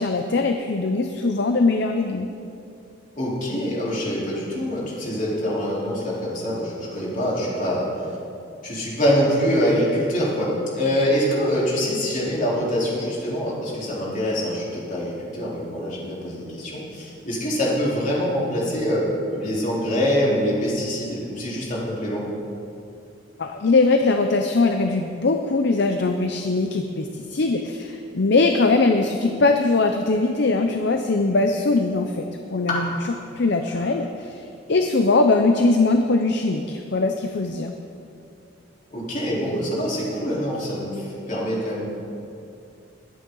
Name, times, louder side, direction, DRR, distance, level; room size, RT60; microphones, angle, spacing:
voice 1, 0.0-2.3 23.4-32.9 33.4-34.1 34.7-37.7, left 3 dB, 60° left, 5 dB, 0.6 m, -21 dB
voice 2, 3.2-7.9 8.6-22.3 32.7-32.8 38.9-41.8, equal, 45° left, -6 dB, 3.8 m, -24 dB
21.0 x 9.1 x 3.9 m, 2.6 s
head